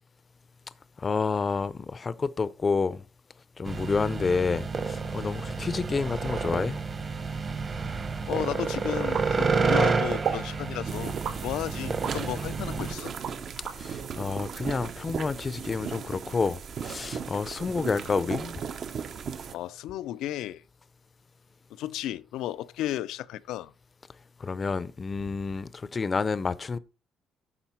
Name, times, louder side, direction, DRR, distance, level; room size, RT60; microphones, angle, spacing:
voice 1, 1.0-3.0 3.6-6.8 13.8-18.6 24.4-26.8, left 4 dB, 25° left, 0.6 m, -29 dB
sound 1, 3.7-12.9, right 4 dB, 30° right, 1.1 m, -29 dB
voice 2, 8.3-11.1 11.4-13.1 19.5-20.6 21.7-23.7, left 13 dB, 85° left, 0.5 m, -33 dB
sound 2, 9.1-9.8 10.2-10.5 11.2-12.2 12.7-13.8, right 8 dB, 75° right, 3.3 m, -34 dB
sound 3, 10.9-19.5, right 7 dB, 45° right, 0.7 m, -37 dB
10.0 x 6.8 x 4.4 m
cardioid pair, 140°, 0 cm